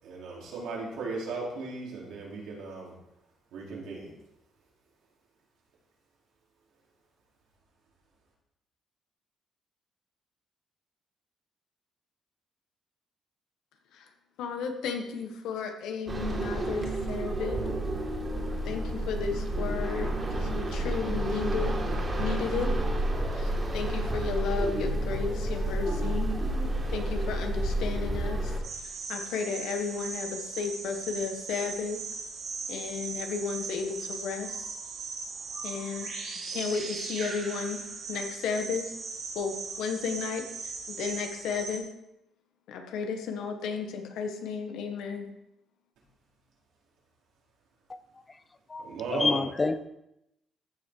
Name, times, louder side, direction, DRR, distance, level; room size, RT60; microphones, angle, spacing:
voice 1, 0.0-2.9 3.5-4.1 48.8-49.4, right 3 dB, 90° right, -4 dB, 4.1 m, -36 dB
voice 2, 14.4-17.7 18.6-21.7 22.2-22.7 23.3-26.3 26.9-28.6 29.1-32.0 32.7-34.7 35.6-36.1 36.5-37.8 38.1-38.9 39.3-41.9 42.7-45.3, left 5 dB, 85° left, 5 dB, 1.6 m, -33 dB
sound 1, 16.1-28.6, right 1 dB, 30° right, 2.6 m, -30 dB
sound 2, 28.6-41.8, right 4 dB, 70° right, 3.6 m, -38 dB
voice 3, 48.7-49.8, left 3 dB, 25° left, 12 dB, 0.7 m, -28 dB
14.5 x 6.1 x 4.8 m, 0.86 s
cardioid pair, 90°, 0 cm